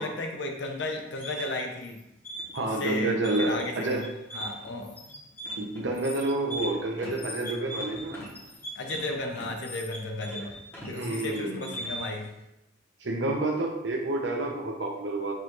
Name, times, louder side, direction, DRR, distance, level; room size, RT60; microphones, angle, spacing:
voice 1, 0.0-2.0 2.8-4.0 4.3-5.0 8.7-10.6 10.9-12.3, left 2 dB, 75° left, 3 dB, 0.6 m, -34 dB
sound 1, 1.1-12.2, equal, 10° left, 0.9 m, -39 dB
voice 2, 2.5-4.1 5.6-8.2 10.9-11.7 13.0-15.3, right 2 dB, 80° right, 1 dB, 0.7 m, -29 dB
4.8 x 2.5 x 3.0 m, 0.88 s
head